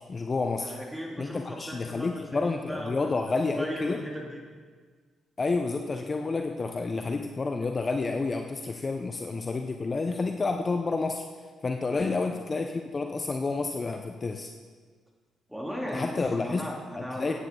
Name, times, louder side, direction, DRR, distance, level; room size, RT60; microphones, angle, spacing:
voice 1, 0.0-0.7 1.2-4.0 5.4-11.2 11.6-14.5 15.9-16.6 17.0-17.3, left 3 dB, 35° left, 5 dB, 0.7 m, -29 dB
voice 2, 0.6-4.5 11.8-12.1 15.5-17.3, equal, 5° right, -2 dB, 3.2 m, -37 dB
14.5 x 9.2 x 3.8 m, 1.5 s
hypercardioid pair, 45°, 0 cm